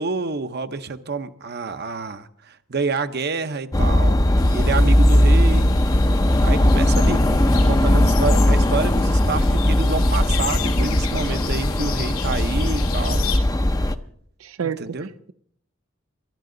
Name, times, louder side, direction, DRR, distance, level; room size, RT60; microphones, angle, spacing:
voice 1, 0.0-2.3 2.7-4.2 4.5-5.7 6.4-7.2 7.6-13.2 14.8-15.1, right 4 dB, 50° right, 0.9 m, -28 dB
sound 1, 3.7-13.9, left 1 dB, 20° left, 0.6 m, -18 dB
sound 2, 4.4-13.4, left 6 dB, 85° left, 2.2 m, -33 dB
voice 2, 14.4-15.3, right 7 dB, 85° right, 0.5 m, -30 dB
22.5 x 12.0 x 3.9 m
head